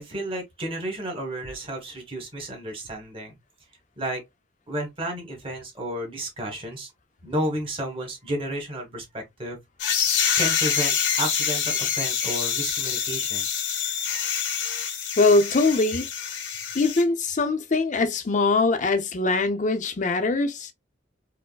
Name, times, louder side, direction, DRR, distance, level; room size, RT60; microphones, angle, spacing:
voice 1, 0.0-3.4 4.0-4.2 4.7-6.9 7.2-9.6 10.3-13.5, right 1 dB, 30° right, 1.3 m, -32 dB
sound 1, 9.8-17.0, left 7 dB, 70° left, 0.8 m, -26 dB
voice 2, 15.2-16.1 16.7-20.7, left 3 dB, 40° left, 0.6 m, -22 dB
4.5 x 2.1 x 2.2 m
head